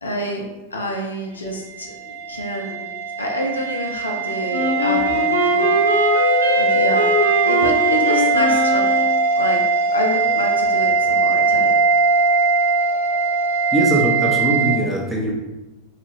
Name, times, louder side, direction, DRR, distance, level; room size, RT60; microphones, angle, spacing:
voice 1, 0.0-2.9 3.2-5.8 6.1-7.1 7.4-9.1 9.3-9.6 9.9-11.7, equal, 75° left, 0 dB, 0.5 m, -27 dB
sound 1, 1.7-14.8, right 4 dB, 60° right, 0.4 m, -20 dB
Wind instrument woodwind instrument, 4.5-9.2, left 1 dB, 90° right, 0.7 m, -22 dB
voice 2, 13.7-15.3, right 1 dB, 5° right, -4 dB, 0.7 m, -20 dB
2.9 x 2.4 x 3.1 m, 1.0 s
figure-of-eight pair, 90°, 0 cm